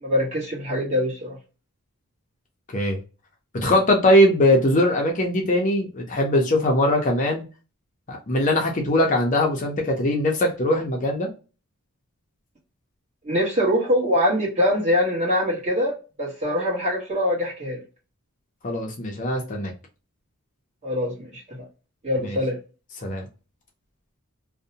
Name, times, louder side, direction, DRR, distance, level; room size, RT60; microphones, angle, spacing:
voice 1, 0.0-1.4 13.2-17.8 20.8-21.6 22.0-22.6, left 1 dB, 30° right, -5 dB, 1.1 m, -23 dB
voice 2, 3.6-7.4 8.1-11.3 18.6-19.7 22.2-22.4 23.0-23.3, left 1 dB, 35° left, 1 dB, 0.5 m, -21 dB
2.6 x 2.1 x 2.6 m, 0.33 s
head